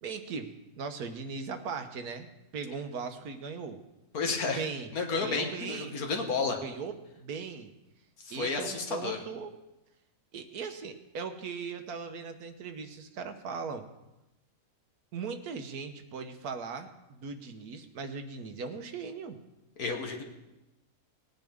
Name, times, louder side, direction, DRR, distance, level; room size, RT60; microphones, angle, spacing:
voice 1, 0.0-2.3 2.5-3.8 4.4-4.9 5.2-6.0 6.6-7.7 8.3-9.5 10.3-13.9 15.1-19.4, right 5 dB, 75° right, 7 dB, 1.4 m, -39 dB
voice 2, 4.1-4.7 4.9-6.6 8.2-9.2 19.8-20.2, left 4 dB, 65° left, 3 dB, 1.8 m, -31 dB
19.0 x 9.3 x 3.6 m, 0.96 s
omnidirectional pair, 1.7 m